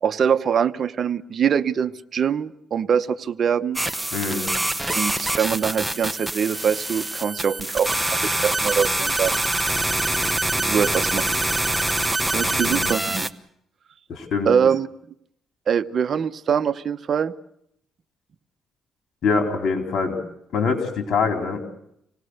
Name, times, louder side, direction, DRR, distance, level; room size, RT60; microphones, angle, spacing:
voice 1, 0.0-3.8 4.9-9.4 10.5-11.3 12.3-13.3 14.4-14.9 15.7-17.3, right 7 dB, 50° right, 10 dB, 0.9 m, -23 dB
sound 1, 3.8-13.3, right 1 dB, 10° right, 1.0 m, -24 dB
voice 2, 4.1-4.5 12.4-12.9 14.1-14.5 19.2-20.2 20.5-21.6, left 4 dB, 65° left, 3 dB, 4.3 m, -24 dB
26.5 x 19.0 x 6.6 m, 0.74 s
cardioid pair, 90°, 0 cm